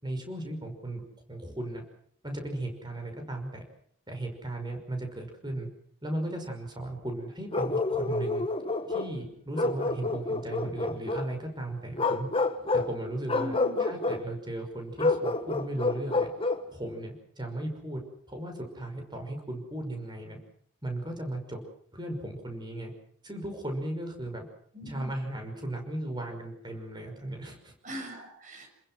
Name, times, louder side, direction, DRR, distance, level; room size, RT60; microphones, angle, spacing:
voice 1, 0.0-1.0 1.3-1.8 2.2-3.6 4.1-5.7 6.0-8.4 8.9-12.3 12.7-16.3 16.7-18.0 18.3-20.4 20.8-21.6 21.9-22.9 23.2-24.5 24.9-27.7, right 1 dB, 20° right, 4 dB, 5.7 m, -36 dB
Bark, 7.5-9.1 9.5-11.3 11.9-12.9 13.3-14.2 15.0-16.7, left 3 dB, 25° left, 1.4 m, -28 dB
voice 2, 13.3-13.8 24.7-25.1 27.8-28.7, equal, 35° right, 4 dB, 6.8 m, -40 dB
29.0 x 21.0 x 6.3 m, 0.62 s
head